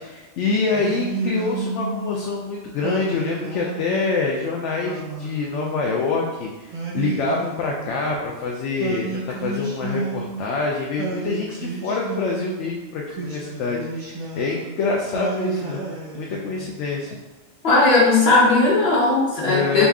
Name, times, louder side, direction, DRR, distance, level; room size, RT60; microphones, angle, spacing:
voice 1, 0.0-15.8 16.1-17.1 19.4-19.9, left 4 dB, 70° left, -1 dB, 0.8 m, -26 dB
Singing, 0.7-2.2 2.8-4.2 4.8-6.1 6.7-8.2 8.8-10.6 11.0-12.6 13.1-14.7 15.1-16.8, right 4 dB, 45° right, 0.6 m, -31 dB
voice 2, 17.6-19.9, left 3 dB, 50° left, -4 dB, 1.3 m, -17 dB
4.1 x 2.4 x 3.5 m, 1.2 s
omnidirectional pair, 1.4 m